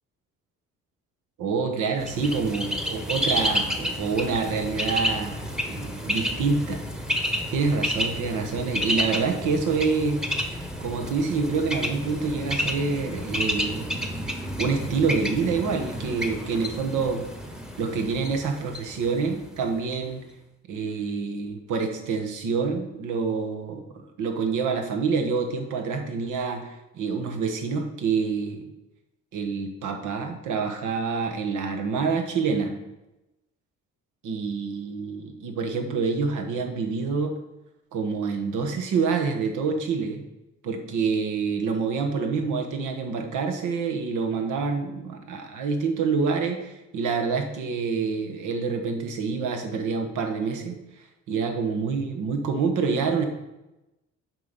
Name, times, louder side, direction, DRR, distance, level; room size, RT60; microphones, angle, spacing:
voice 1, 1.4-6.8 7.5-10.2 10.8-13.9 14.6-17.2 17.8-20.2 20.7-23.8 24.2-28.6 29.3-32.8 34.2-37.3 37.9-40.2 40.6-50.8 51.3-53.2, right 5 dB, 85° right, 4 dB, 1.2 m, -27 dB
Bird, 2.0-19.8, equal, ahead, 0.9 m, -30 dB
7.8 x 4.7 x 5.2 m, 0.96 s
cardioid pair, 90°, 30 cm